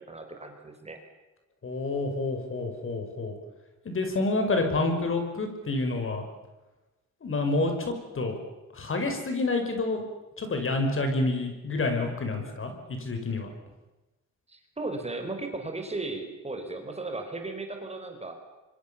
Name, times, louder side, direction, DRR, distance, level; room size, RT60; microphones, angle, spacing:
voice 1, 0.1-1.0 14.5-18.4, right 2 dB, 20° right, 5 dB, 4.4 m, -36 dB
voice 2, 1.6-3.3 3.8-6.2 7.2-8.4 8.7-10.1 10.4-13.5, left 2 dB, 45° left, 5 dB, 5.8 m, -28 dB
26.0 x 24.0 x 7.2 m, 1.0 s
cardioid pair, 90°, 30 cm